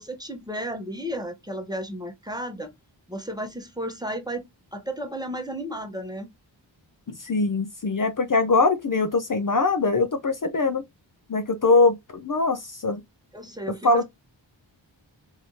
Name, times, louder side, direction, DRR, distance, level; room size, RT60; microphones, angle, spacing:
voice 1, 0.2-2.7 3.1-6.3 13.3-14.0, right 1 dB, 10° right, 0.9 m, -33 dB
voice 2, 7.2-10.8 11.3-13.0 13.7-14.0, left 3 dB, 45° left, 0.6 m, -22 dB
3.3 x 2.8 x 2.8 m
cardioid pair, 40°, 48 cm